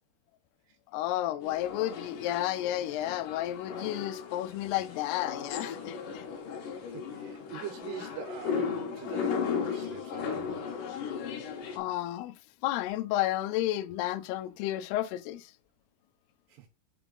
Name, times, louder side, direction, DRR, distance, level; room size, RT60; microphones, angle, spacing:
voice 1, 0.9-6.2 11.8-12.3 12.6-15.5, left 14 dB, 80° left, 2.5 m, -32 dB
sound 1, 1.4-11.8, left 6 dB, 65° left, 2.4 m, -36 dB
voice 2, 6.9-10.6 16.5-16.7, right 9 dB, 85° right, 3.0 m, -43 dB
5.9 x 4.4 x 3.9 m
omnidirectional pair, 4.8 m